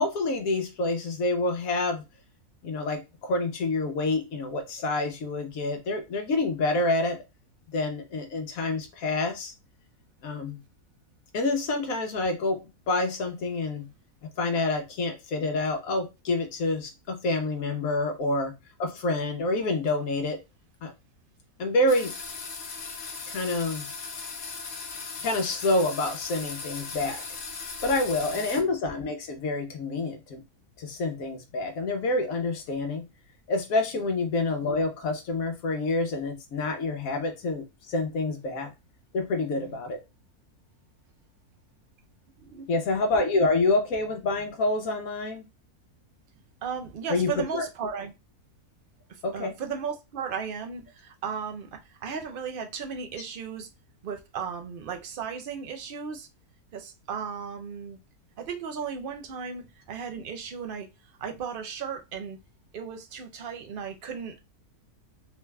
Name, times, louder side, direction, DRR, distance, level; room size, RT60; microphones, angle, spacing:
voice 1, 0.0-2.0 2.6-7.2 7.7-9.5 10.2-10.6 11.3-13.9 14.4-18.5 18.8-20.4 20.8-20.9 21.6-22.1 23.3-23.9 25.2-27.2 27.8-30.4 30.8-33.0 33.5-38.7 39.1-40.0 42.7-45.5 47.1-47.7 49.2-49.5, left 2 dB, 70° left, 1.2 m, -27 dB
sound 1, 21.9-28.6, left 4 dB, 50° left, 0.9 m, -38 dB
voice 2, 46.6-48.1 49.1-53.7 54.0-56.3 56.7-58.0 58.4-60.9 61.2-62.4 62.7-64.4, right 6 dB, 65° right, 0.5 m, -35 dB
3.9 x 2.2 x 3.2 m
omnidirectional pair, 1.6 m